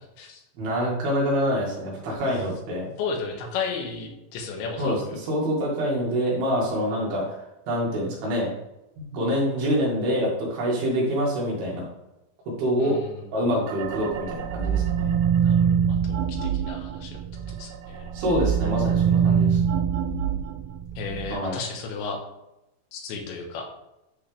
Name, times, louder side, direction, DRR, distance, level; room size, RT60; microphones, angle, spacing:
voice 1, 0.6-2.9 4.8-7.4 7.7-8.5 9.0-11.8 12.6-13.0 13.3-15.1 18.1-19.6 21.3-21.6, equal, 65° right, -4 dB, 3.7 m, -26 dB
voice 2, 3.0-5.0 12.8-13.3 15.4-17.2 17.5-18.1 21.0-22.2 22.9-23.6, left 5 dB, 90° left, 2 dB, 3.5 m, -34 dB
sound 1, 13.7-17.6 17.9-21.3, right 7 dB, 85° right, 2.7 m, -24 dB
11.0 x 4.2 x 3.3 m, 0.91 s
omnidirectional pair, 5.0 m